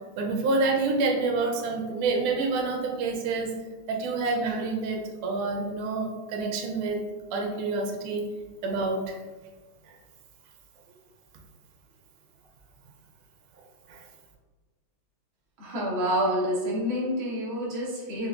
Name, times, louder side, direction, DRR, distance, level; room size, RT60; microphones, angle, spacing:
voice 1, 0.2-3.5 3.9-7.0 7.3-8.2 8.6-9.2 9.9-10.0 13.9-14.0, right 3 dB, 85° right, 2 dB, 1.5 m, -28 dB
voice 2, 15.6-18.3, equal, 45° right, -5 dB, 0.8 m, -28 dB
4.7 x 2.4 x 2.2 m, 1.3 s
omnidirectional pair, 2.3 m